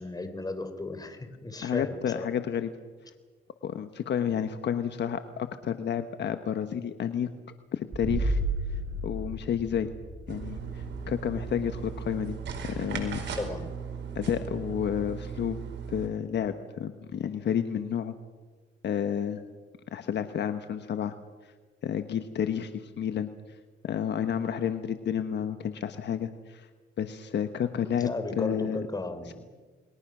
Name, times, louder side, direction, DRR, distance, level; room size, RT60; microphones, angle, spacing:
voice 1, 0.0-2.3 13.3-13.7 28.0-29.3, left 2 dB, 20° left, 9 dB, 3.6 m, -35 dB
voice 2, 1.6-2.7 3.6-7.3 7.7-8.4 9.0-9.9 10.3-12.4 12.6-13.2 14.1-15.6 15.9-18.1 18.8-19.4 19.9-21.1 21.8-23.3 23.8-26.7 27.0-28.8 29.3-29.4, left 8 dB, 60° left, 9 dB, 1.3 m, -30 dB
sound 1, 7.9-13.5, right 1 dB, 45° right, 6.5 m, -34 dB
sound 2, 10.3-16.1, right 6 dB, 65° right, 4.8 m, -37 dB
29.0 x 21.5 x 6.2 m, 1.4 s
cardioid pair, 90°, 20 cm